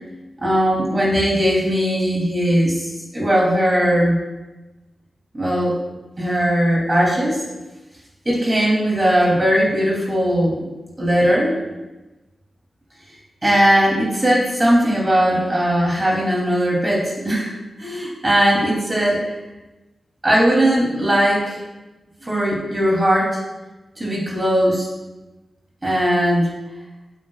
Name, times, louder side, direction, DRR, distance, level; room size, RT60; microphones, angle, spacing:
voice 1, 0.4-4.2 5.3-5.7 6.2-7.4 8.2-10.5 11.0-11.6 13.4-17.5 17.8-19.2 20.2-21.6 22.2-23.4 24.0-24.9 25.8-26.5, equal, 25° right, -4 dB, 3.0 m, -18 dB
15.0 x 8.4 x 2.4 m, 1.1 s
wide cardioid pair, 110°, 0 cm